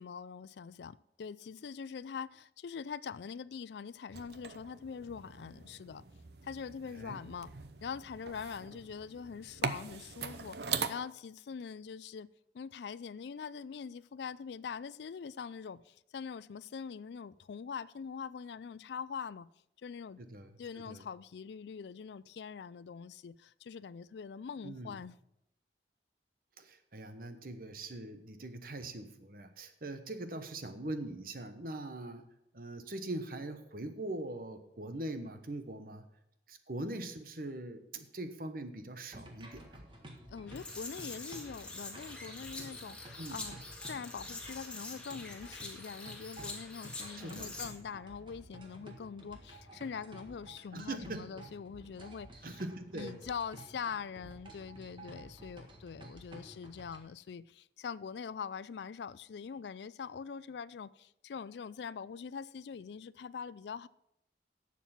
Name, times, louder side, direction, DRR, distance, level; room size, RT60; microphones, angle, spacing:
voice 1, 0.0-6.0 6.4-7.5 7.8-12.3 12.5-19.5 19.8-20.2 20.6-25.1 40.3-52.6 52.9-63.9, left 6 dB, 75° left, 0.4 m, -43 dB
sound 1, 4.1-10.9, right 6 dB, 70° right, 0.8 m, -41 dB
voice 2, 20.2-21.0 24.6-25.0 26.6-32.3 32.5-36.0 36.5-39.8 43.2-43.4 47.1-47.5 50.7-51.3 52.4-53.2, right 2 dB, 50° right, 1.1 m, -42 dB
sound 2, 39.1-57.0, right 1 dB, 25° right, 1.6 m, -52 dB
sound 3, 40.5-47.7, left 2 dB, 5° left, 1.8 m, -45 dB
11.5 x 7.4 x 5.9 m
head